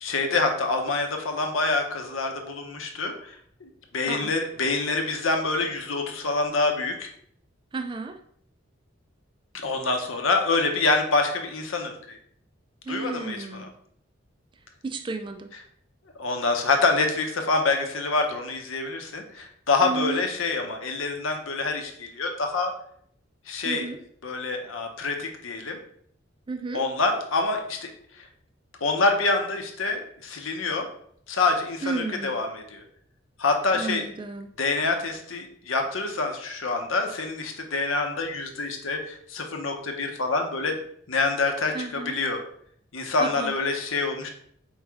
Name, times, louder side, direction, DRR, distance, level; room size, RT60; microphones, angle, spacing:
voice 1, 0.0-3.3 3.6-7.1 9.5-12.2 12.9-13.7 16.2-22.7 23.5-23.8 24.2-25.8 26.7-27.9 28.8-30.9 31.3-32.8 33.4-34.0 34.6-40.8 41.1-41.7 42.1-42.4 42.9-44.3, left 3 dB, 85° left, 4 dB, 0.8 m, -26 dB
voice 2, 7.7-8.2 12.8-13.7 14.8-15.5 19.8-20.3 23.6-24.0 26.5-26.9 31.8-32.4 33.7-34.5 41.7-42.2 43.2-43.5, right 3 dB, 25° right, 7 dB, 0.3 m, -32 dB
4.8 x 3.1 x 3.5 m, 0.65 s
head